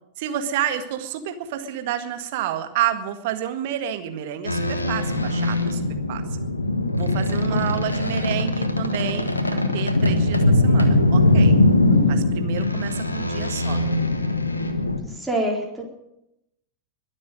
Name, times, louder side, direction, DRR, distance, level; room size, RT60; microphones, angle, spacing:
voice 1, 0.2-5.8 6.1-6.2 7.0-11.6 12.1-13.8, right 10 dB, 50° right, 8 dB, 1.8 m, -29 dB
sound 1, 4.5-15.0, left 2 dB, 80° left, 1.5 m, -21 dB
voice 2, 7.5-7.8 11.9-12.2 15.0-15.8, right 1 dB, 5° right, -2 dB, 4.2 m, -28 dB
22.5 x 7.6 x 7.7 m, 0.85 s
figure-of-eight pair, 90°, 0 cm